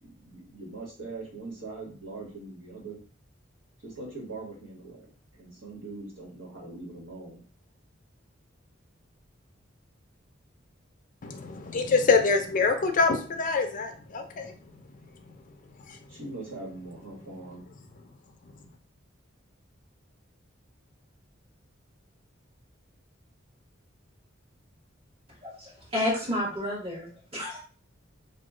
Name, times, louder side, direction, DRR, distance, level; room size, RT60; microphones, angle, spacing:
voice 1, 0.0-3.0 3.8-7.4 16.2-17.7, right 3 dB, 85° right, -3 dB, 1.3 m, -41 dB
voice 2, 11.2-14.5 15.9-16.0, left 4 dB, 40° left, 5 dB, 0.4 m, -25 dB
voice 3, 25.4-27.6, left 1 dB, 30° right, -5 dB, 1.5 m, -31 dB
2.9 x 2.3 x 3.6 m, 0.40 s
head